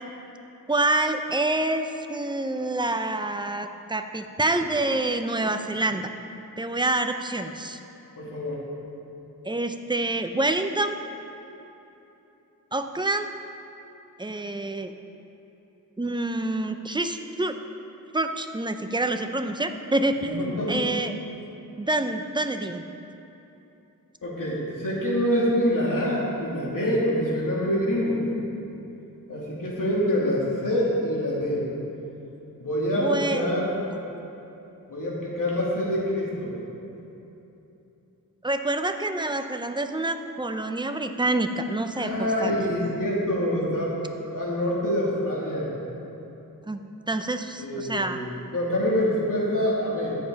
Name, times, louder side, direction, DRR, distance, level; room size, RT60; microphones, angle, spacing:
voice 1, 0.7-6.1 6.6-7.8 9.4-11.0 12.7-13.3 14.2-14.9 16.0-17.6 18.1-21.1 21.8-22.8 33.0-33.5 38.4-42.5 46.7-46.8 47.1-48.2, right 2 dB, 15° right, 7 dB, 0.6 m, -27 dB
voice 2, 8.2-8.6 20.2-20.9 24.2-28.3 29.3-31.6 32.6-33.7 34.9-36.6 42.0-44.0 44.3-45.7 47.6-50.2, equal, 65° left, -5 dB, 2.8 m, -26 dB
13.5 x 9.2 x 4.0 m, 3.0 s
wide cardioid pair, 100°, 35 cm